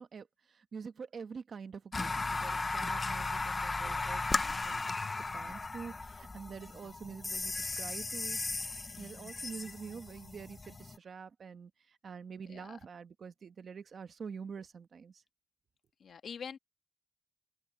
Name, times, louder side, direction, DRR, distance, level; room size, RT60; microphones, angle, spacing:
voice 1, 0.0-8.4 9.0-15.2, right 6 dB, 60° right, 1.1 m, -46 dB
sound 1, 1.9-11.0, left 3 dB, 25° left, 0.5 m, -36 dB
voice 2, 8.9-9.3 12.5-12.8 16.0-16.6, left 7 dB, 85° left, 1.6 m, -46 dB
open air
wide cardioid pair, 180°, 0 cm